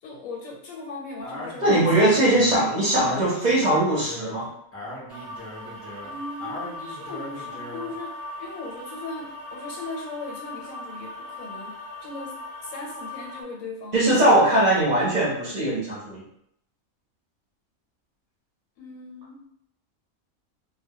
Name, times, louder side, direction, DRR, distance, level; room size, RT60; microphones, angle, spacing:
voice 1, 0.0-1.9 6.0-12.3 12.6-14.0 18.8-19.4, left 3 dB, 85° left, -2 dB, 1.1 m, -38 dB
Speech, 1.2-8.0, left 1 dB, 20° left, 0.3 m, -38 dB
voice 2, 1.6-4.5 13.9-16.2, right 1 dB, 40° right, -6 dB, 0.7 m, -20 dB
sound 1, 5.1-13.4, left 2 dB, 75° right, 0.3 m, -39 dB
2.2 x 2.1 x 2.7 m, 0.73 s
omnidirectional pair, 1.4 m